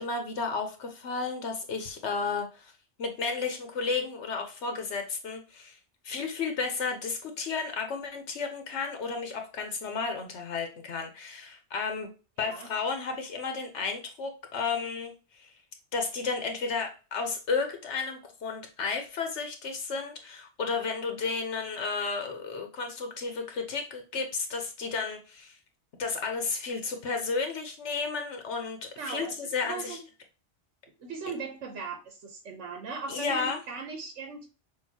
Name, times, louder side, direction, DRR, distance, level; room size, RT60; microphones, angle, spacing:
voice 1, 0.0-2.7 3.0-5.8 6.0-12.1 12.4-15.5 15.9-25.6 26.0-30.0 33.1-33.6, left 4 dB, 75° left, 5 dB, 1.1 m, -33 dB
voice 2, 12.4-12.7 29.0-30.1 31.0-34.5, right 4 dB, 80° right, 4 dB, 1.2 m, -39 dB
6.4 x 2.6 x 2.8 m, 0.32 s
omnidirectional pair, 1.2 m